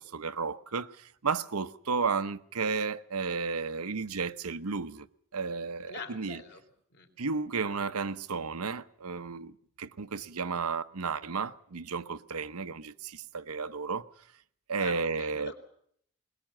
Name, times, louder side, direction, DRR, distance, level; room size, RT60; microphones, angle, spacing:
voice 1, 0.0-5.1 5.3-6.4 7.2-9.5 9.8-14.1 14.7-15.5, right 5 dB, 90° right, 0.9 m, -33 dB
voice 2, 5.9-6.6 6.9-7.1 14.8-15.6, left 4 dB, 50° left, 3.6 m, -43 dB
21.0 x 20.0 x 7.4 m
head